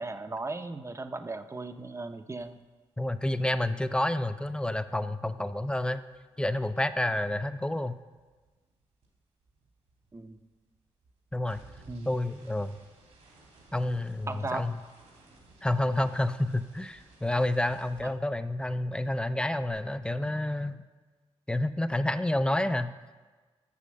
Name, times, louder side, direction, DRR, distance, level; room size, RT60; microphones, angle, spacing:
voice 1, 0.0-2.6 10.1-10.4 11.9-12.1 14.3-14.6 18.0-18.1, right 3 dB, 25° right, 8 dB, 0.7 m, -37 dB
sound 1, 2.4-2.6 2.9-7.3 7.5-18.8 19.1-19.7, right 2 dB, 80° right, 2.7 m, -59 dB
voice 2, 3.0-6.0 6.4-8.0 11.3-11.6 12.1-12.8 13.7-14.8 15.6-20.8 21.5-22.9, left 1 dB, 10° left, 12 dB, 0.5 m, -29 dB
8.5 x 6.7 x 6.3 m, 1.3 s
cardioid pair, 65°, 11 cm